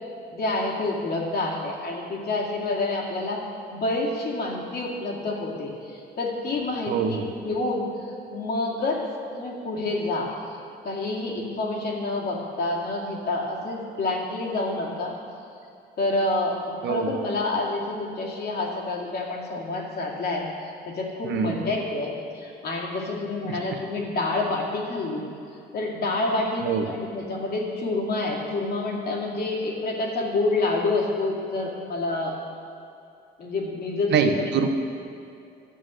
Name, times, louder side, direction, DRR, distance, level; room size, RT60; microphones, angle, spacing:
voice 1, 0.3-3.4 3.7-9.0 9.3-10.3 10.8-15.1 16.0-25.2 25.7-32.4 33.4-34.5, left 2 dB, 55° left, -2 dB, 2.3 m, -28 dB
voice 2, 6.9-7.3 16.8-17.1 21.2-21.6 23.4-23.6 26.6-26.9 34.1-34.7, right 6 dB, 70° right, 5 dB, 1.0 m, -25 dB
12.0 x 7.6 x 6.3 m, 2.6 s
cardioid pair, 105°, 19 cm